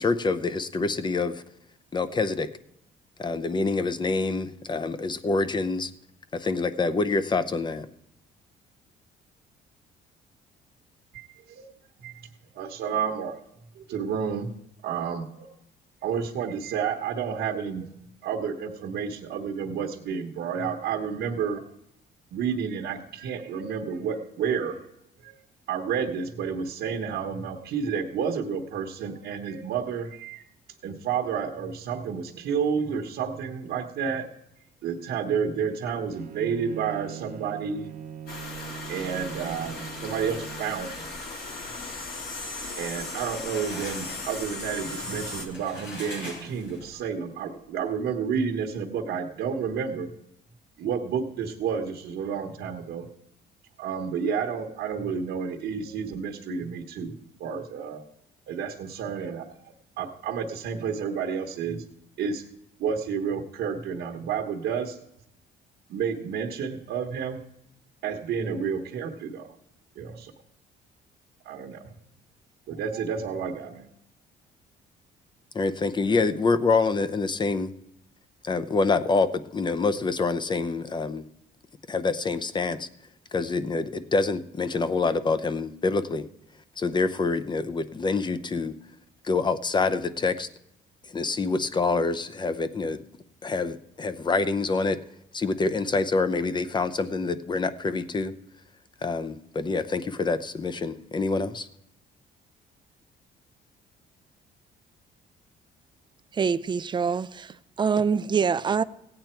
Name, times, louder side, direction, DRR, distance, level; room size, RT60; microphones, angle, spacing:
voice 1, 0.0-1.4 1.9-2.5 3.2-5.9 6.3-7.9 75.5-77.7 78.4-81.2 81.9-82.9 83.3-86.2 86.8-88.7 89.2-90.5 91.0-93.0 93.4-95.0 95.3-98.3 99.0-101.7, left 3 dB, 25° left, 0.7 m, -26 dB
voice 2, 11.1-11.7 12.0-12.3 12.5-13.4 13.7-14.5 14.8-15.5 16.0-17.9 18.2-21.7 22.3-24.9 25.2-25.4 25.7-30.4 30.8-34.3 34.8-37.9 38.9-41.1 42.8-50.1 50.8-53.1 53.8-57.1 57.4-58.0 58.5-59.4 60.0-61.8 62.2-62.4 62.8-65.0 65.9-67.4 68.0-69.5 70.0-70.3 71.4-71.9 72.7-73.9, right 6 dB, 75° right, 1.2 m, -30 dB
Bowed string instrument, 36.1-40.9, right 9 dB, 55° right, 0.9 m, -41 dB
sound 1, 38.3-45.5, left 2 dB, 60° left, 2.8 m, -37 dB
sound 2, 43.2-47.1, left 2 dB, 90° left, 5.4 m, -43 dB
voice 3, 106.3-108.8, right 6 dB, 25° right, 0.4 m, -25 dB
16.0 x 8.8 x 4.5 m
cardioid pair, 125°, 18 cm